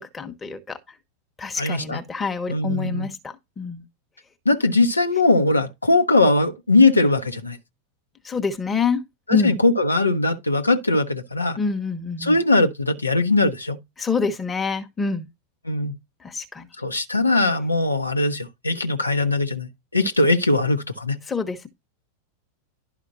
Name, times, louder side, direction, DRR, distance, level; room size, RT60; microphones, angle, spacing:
voice 1, 0.1-0.8 1.4-3.1 3.6-3.8 8.2-9.0 9.3-9.5 11.6-12.4 14.0-15.2 16.2-16.7 21.3-21.7, left 5 dB, 15° left, 1.2 m, -26 dB
voice 2, 1.6-2.0 2.5-3.1 4.4-7.6 9.3-11.6 12.2-13.8 15.6-15.9 16.8-21.2, left 2 dB, 80° left, 1.1 m, -20 dB
11.5 x 5.0 x 2.7 m
figure-of-eight pair, 90°, 0 cm